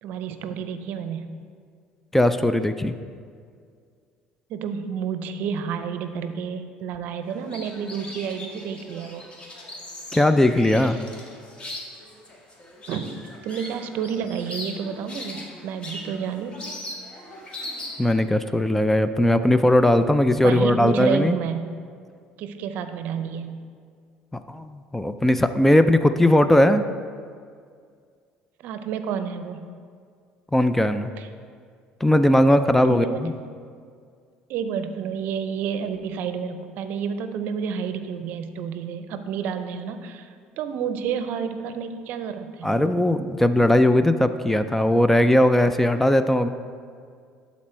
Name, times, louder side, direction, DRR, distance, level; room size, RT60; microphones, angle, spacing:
voice 1, 0.0-1.2 4.5-9.3 12.9-16.6 20.4-21.7 22.4-23.6 28.6-29.6 31.2-31.3 32.8-33.3 34.5-40.3 40.6-42.7, right 7 dB, 65° right, 9 dB, 0.6 m, -30 dB
voice 2, 2.1-3.0 10.1-11.0 18.0-21.3 24.5-26.9 30.5-31.1 32.0-33.3 42.6-46.5, left 1 dB, 10° left, 10 dB, 0.3 m, -19 dB
sound 1, 7.3-18.2, left 1 dB, 30° left, 1.7 m, -39 dB
11.5 x 4.2 x 4.4 m, 2.1 s
supercardioid pair, 100°, 3 cm